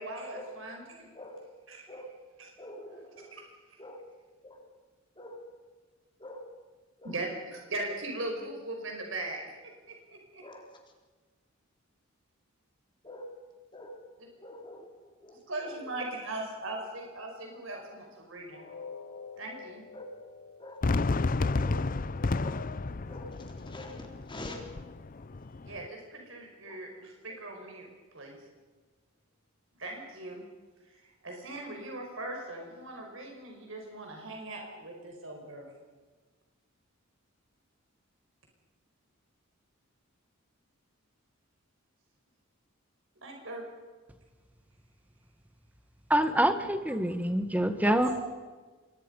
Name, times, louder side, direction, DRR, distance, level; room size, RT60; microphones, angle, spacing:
voice 1, 0.0-1.1 1.7-1.9 3.4-3.8 7.0-9.4 9.9-10.0 10.3-10.4 15.5-18.6 19.4-19.8 25.6-28.4 29.8-30.4 30.9-35.7 43.2-43.6 47.8-48.2, right 2 dB, 65° right, 1 dB, 5.3 m, -39 dB
voice 2, 1.1-1.6 1.9-2.2 2.6-3.4 3.8-4.0 4.4-4.7 5.1-5.6 6.2-6.6 7.0-7.2 10.4-10.8 13.0-13.4 13.7-14.1 14.4-16.1 19.9-20.0 20.6-21.0 21.6-22.0 22.4-24.7 25.1-25.3 26.7-26.8 27.3-27.4, left 1 dB, 25° left, 2 dB, 3.5 m, -46 dB
sound 1, 18.5-24.5 24.9-25.1 25.5-25.6, left 5 dB, 90° left, 5.7 m, -50 dB
Fireworks, 20.8-25.9, left 3 dB, 40° left, 0.6 m, -31 dB
voice 3, 46.1-48.1, right 1 dB, 5° right, 9 dB, 1.5 m, -26 dB
26.5 x 22.5 x 5.5 m, 1.3 s
head